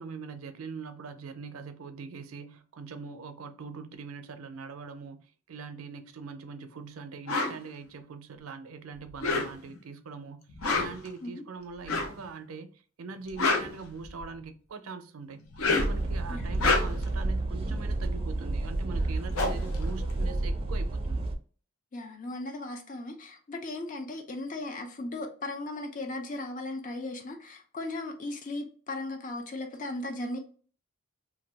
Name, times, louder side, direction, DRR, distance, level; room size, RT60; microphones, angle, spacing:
voice 1, 0.0-12.7 13.0-15.5 15.8-21.3, right 4 dB, 90° right, 0.5 m, -42 dB
sound 1, 7.3-7.6 9.1-9.8 10.5-11.1 11.8-12.2 13.1-14.4 15.4-16.0 16.5-17.1 18.7-18.8 19.0-20.7, left 3 dB, 85° left, 0.7 m, -29 dB
sound 2, 15.8-21.3, right 2 dB, 25° right, 0.4 m, -30 dB
voice 2, 21.9-30.4, left 2 dB, 40° left, 0.5 m, -37 dB
2.6 x 2.2 x 3.3 m
head